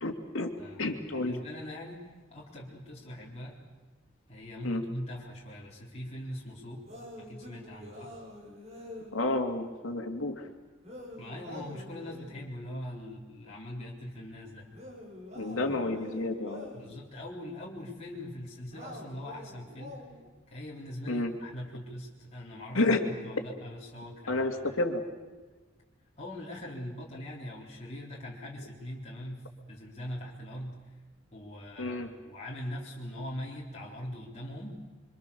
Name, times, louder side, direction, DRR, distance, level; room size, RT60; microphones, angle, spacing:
voice 1, 0.0-0.5 0.8-1.4 4.6-4.8 9.1-10.5 15.3-16.7 21.1-21.3 22.7-23.0 24.3-25.0 31.8-32.1, left 2 dB, 85° left, 4 dB, 2.7 m, -30 dB
voice 2, 0.6-2.0 2.3-3.6 4.3-6.9 7.2-8.1 11.2-14.7 15.5-15.7 16.7-20.0 20.5-24.8 26.2-30.8 31.3-34.8, left 1 dB, 35° left, -5 dB, 4.1 m, -42 dB
sound 1, 6.8-9.2 10.8-12.5 14.7-16.9 18.7-20.3, left 1 dB, 35° right, 7.3 m, -46 dB
27.5 x 25.0 x 7.1 m, 1.3 s
head